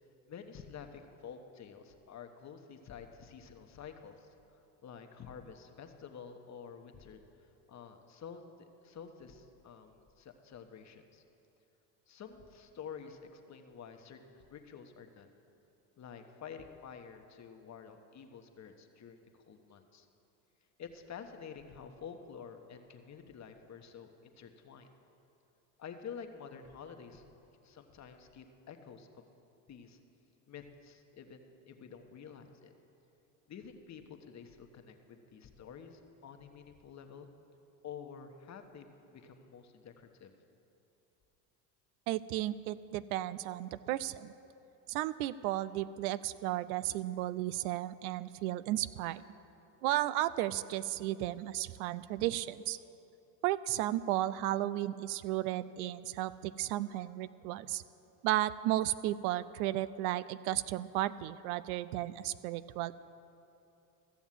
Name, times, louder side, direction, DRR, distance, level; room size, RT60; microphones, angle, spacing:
voice 1, 0.3-4.3 4.8-11.2 12.1-15.3 16.0-20.1 20.8-24.9 25.8-27.2 27.6-29.2 29.7-30.0 30.5-32.7 33.5-37.3 37.8-40.3, left 7 dB, 40° left, 6 dB, 1.2 m, -49 dB
voice 2, 42.1-44.3 44.9-49.2 49.8-52.8 53.4-57.8 58.2-62.9, right 14 dB, 80° right, 16 dB, 0.5 m, -34 dB
14.5 x 7.1 x 7.4 m, 2.8 s
supercardioid pair, 85°, 44 cm